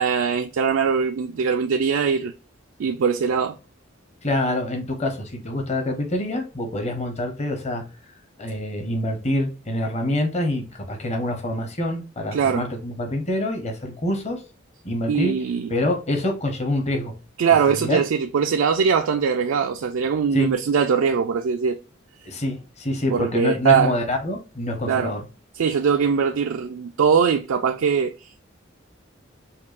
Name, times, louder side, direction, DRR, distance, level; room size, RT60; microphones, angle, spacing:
voice 1, 0.0-2.3 2.8-3.6 12.3-12.7 15.1-15.8 17.4-21.8 23.1-23.9 24.8-25.1 25.6-28.4, right 6 dB, 80° right, 0.4 m, -21 dB
voice 2, 4.2-7.8 8.4-14.4 14.8-15.3 15.7-17.1 17.7-18.0 20.3-20.5 22.3-25.2, left 1 dB, 35° left, 0.9 m, -26 dB
5.4 x 2.3 x 2.4 m
head